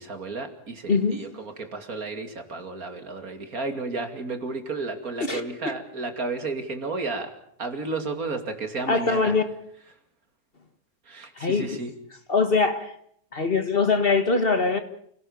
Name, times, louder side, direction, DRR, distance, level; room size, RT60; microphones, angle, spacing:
voice 1, 0.0-7.3 7.6-9.3 11.1-11.9, right 3 dB, 65° right, 6 dB, 3.0 m, -32 dB
voice 2, 0.9-1.2 5.2-5.4 8.9-9.4 11.4-11.8 12.3-13.0 13.3-14.8, left 4 dB, 40° left, 9 dB, 1.6 m, -22 dB
28.5 x 17.0 x 7.2 m, 0.68 s
omnidirectional pair, 1.6 m